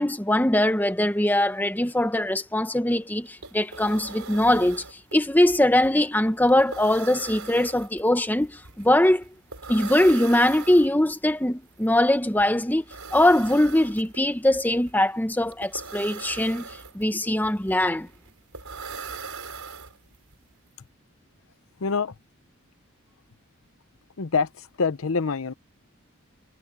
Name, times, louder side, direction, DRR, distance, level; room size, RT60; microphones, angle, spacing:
voice 1, 0.0-9.2 9.7-12.8 13.1-18.1, left 1 dB, 10° left, 0.8 m, -22 dB
sound 1, 3.0-3.1 3.3-20.3, right 5 dB, 85° right, 4.2 m, -41 dB
voice 2, 21.8-22.1 24.2-25.5, left 4 dB, 70° left, 0.7 m, -25 dB
head